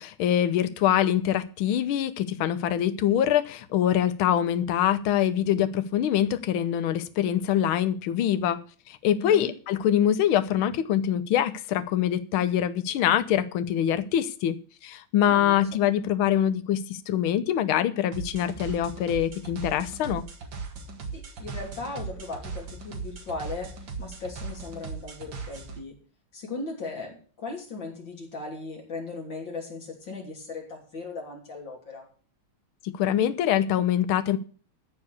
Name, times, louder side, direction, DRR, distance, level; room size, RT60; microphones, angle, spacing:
voice 1, 0.0-20.3 32.8-34.4, left 10 dB, 85° left, 1.6 m, -24 dB
voice 2, 9.2-9.5 15.3-15.7 21.1-23.7 24.0-26.0 26.3-32.1, left 3 dB, 65° left, 3.9 m, -37 dB
sound 1, 18.1-25.8, right 4 dB, 65° right, 2.5 m, -38 dB
14.0 x 4.8 x 8.2 m
omnidirectional pair, 2.2 m